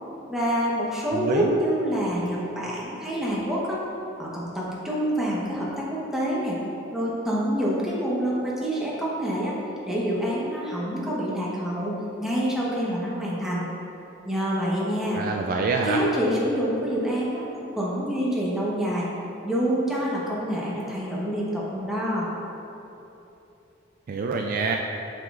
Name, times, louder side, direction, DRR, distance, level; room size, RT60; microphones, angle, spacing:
voice 1, 0.3-3.8 4.2-6.6 6.9-9.6 9.9-13.7 14.2-15.2 15.7-19.1 19.4-22.3, equal, ahead, -6 dB, 1.1 m, -27 dB
voice 2, 1.1-1.6 15.1-16.0 24.1-24.8, right 4 dB, 45° right, 1 dB, 0.3 m, -26 dB
7.5 x 6.0 x 2.5 m, 3.0 s
head